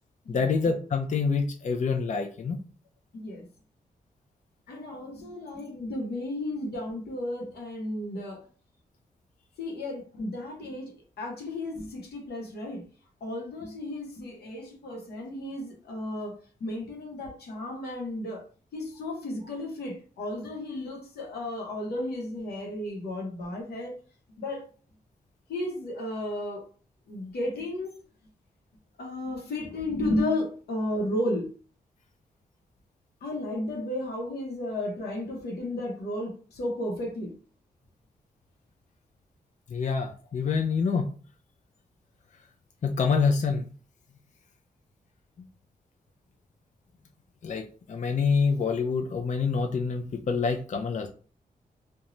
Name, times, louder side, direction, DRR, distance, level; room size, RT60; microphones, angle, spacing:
voice 1, 0.3-2.6 39.7-41.1 42.8-43.7 47.4-51.1, left 5 dB, 50° left, 0.4 m, -26 dB
voice 2, 3.1-3.4 4.7-8.4 9.6-10.9 11.2-12.8 13.2-18.4 18.7-23.9 24.4-24.7 25.5-26.7 27.1-27.9 29.0-31.5 33.2-37.3, left 1 dB, 90° left, 0.8 m, -33 dB
2.5 x 2.2 x 3.0 m
cardioid pair, 55°, 16 cm